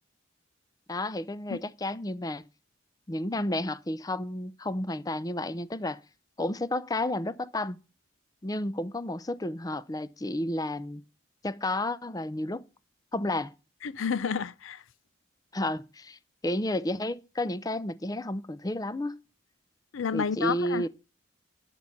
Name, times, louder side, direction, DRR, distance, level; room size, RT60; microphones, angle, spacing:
voice 1, 0.9-2.4 3.1-6.0 6.4-7.8 8.4-11.0 11.4-12.6 13.1-13.5 15.5-19.2 20.1-20.9, left 1 dB, 20° left, 0.5 m, -31 dB
voice 2, 13.8-14.8 19.9-20.8, left 6 dB, 80° left, 0.5 m, -30 dB
11.0 x 8.4 x 5.8 m
head